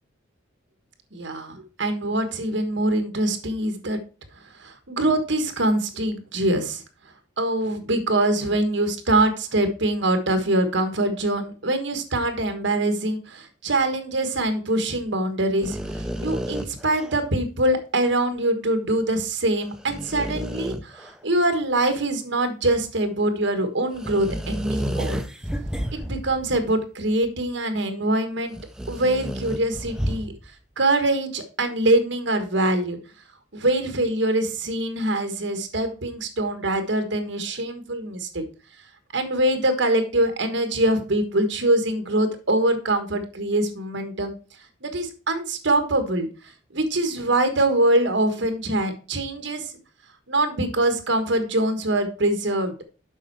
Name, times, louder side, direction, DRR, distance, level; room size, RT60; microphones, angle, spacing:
voice 1, 1.1-4.0 4.6-6.8 7.4-25.2 25.9-28.5 28.9-30.3 30.8-33.0 33.5-38.4 39.1-44.3 44.8-46.3 46.7-49.7 50.3-52.7, right 1 dB, 65° right, 7 dB, 1.4 m, -24 dB
rocco russa, 15.6-17.2 19.6-21.1 23.9-26.6 27.2-27.3 28.5-30.5, equal, 5° right, 0.5 m, -31 dB
7.4 x 5.4 x 4.6 m, 0.36 s
head